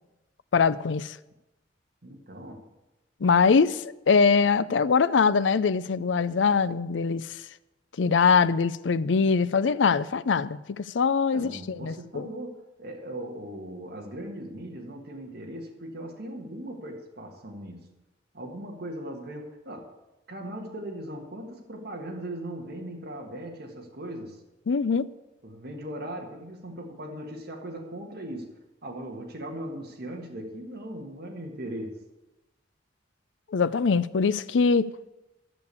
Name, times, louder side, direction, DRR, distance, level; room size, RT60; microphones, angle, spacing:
voice 1, 0.5-1.2 3.2-7.4 8.0-12.3 24.7-25.1 33.5-34.9, left 5 dB, 85° left, 0.5 m, -23 dB
voice 2, 2.0-2.6 11.3-17.8 18.3-19.9 20.3-24.4 25.4-28.5 28.8-32.0, right 1 dB, 60° right, 1.6 m, -39 dB
13.0 x 6.9 x 8.2 m
head